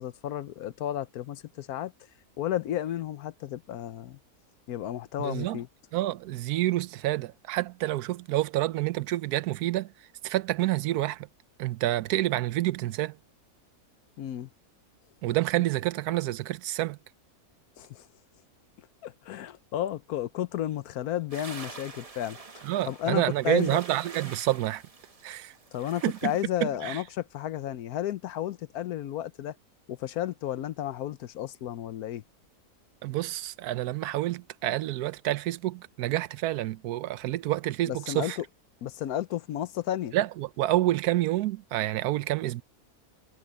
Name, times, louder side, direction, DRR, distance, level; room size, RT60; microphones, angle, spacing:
voice 1, 0.0-1.9 2.4-4.2 4.7-5.7 14.2-14.5 17.8-18.1 19.0-22.4 22.8-23.8 25.7-29.6 29.9-32.2 37.9-38.4 38.8-40.1, left 11 dB, 80° left, 1.2 m, -32 dB
voice 2, 5.2-5.6 5.9-11.3 11.6-13.2 15.2-17.0 22.6-24.8 25.2-25.5 26.0-26.3 26.6-27.0 33.0-38.4 40.1-42.6, right 15 dB, 80° right, 1.1 m, -28 dB
sound 1, 21.3-26.5, right 4 dB, 30° right, 0.9 m, -46 dB
omnidirectional pair, 1.6 m